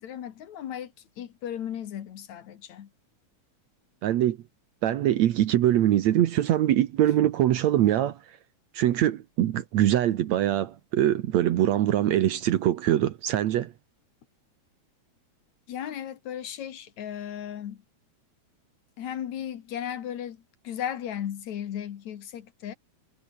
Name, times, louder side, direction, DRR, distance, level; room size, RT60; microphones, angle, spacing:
voice 1, 0.0-2.9 15.7-17.8 19.0-22.7, left 10 dB, 75° left, 2.8 m, -36 dB
voice 2, 4.0-4.4 4.8-8.2 8.7-13.7, right 12 dB, 70° right, 2.3 m, -23 dB
omnidirectional pair, 3.4 m